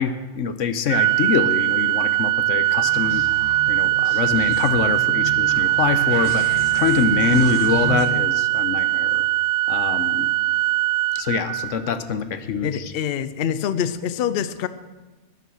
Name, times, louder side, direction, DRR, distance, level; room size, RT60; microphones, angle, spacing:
voice 1, 0.0-3.2 3.7-6.5 6.7-9.2 9.7-10.3 11.1-12.9, left 6 dB, 90° left, 10 dB, 1.2 m, -24 dB
Organ, 0.9-12.0, right 15 dB, 65° right, 0.8 m, -21 dB
sound 1, 2.8-8.1, right 3 dB, 45° right, 1.7 m, -34 dB
voice 2, 12.6-14.7, left 9 dB, 60° left, 14 dB, 0.7 m, -25 dB
13.0 x 9.7 x 6.3 m, 1.2 s
omnidirectional pair, 1.3 m